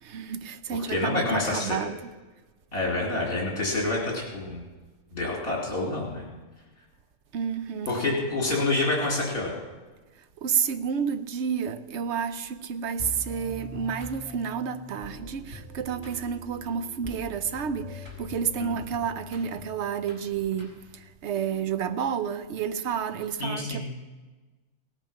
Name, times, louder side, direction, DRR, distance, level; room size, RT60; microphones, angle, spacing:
voice 1, 0.0-2.1 7.3-7.9 10.2-23.9, right 7 dB, 65° right, 1.0 m, -30 dB
voice 2, 0.9-1.8 2.7-4.6 5.1-6.3 7.9-9.5 18.6-18.7 23.4-23.9, left 2 dB, 45° left, 3.5 m, -27 dB
sound 1, 13.0-21.1, left 2 dB, 20° right, 4.0 m, -43 dB
17.5 x 9.0 x 5.8 m
omnidirectional pair, 1.3 m